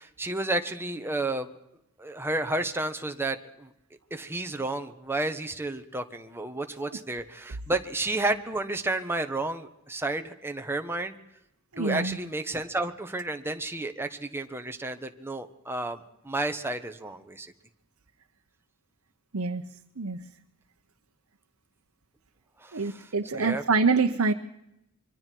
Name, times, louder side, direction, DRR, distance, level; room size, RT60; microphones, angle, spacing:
voice 1, 0.0-1.5 2.0-3.7 4.1-11.1 11.8-17.5 22.6-23.6, right 2 dB, 10° right, 6 dB, 1.3 m, -31 dB
voice 2, 11.7-12.2 19.3-19.6 20.0-20.2 22.7-24.3, right 4 dB, 70° right, 5 dB, 1.0 m, -25 dB
26.0 x 23.5 x 4.6 m, 0.84 s
head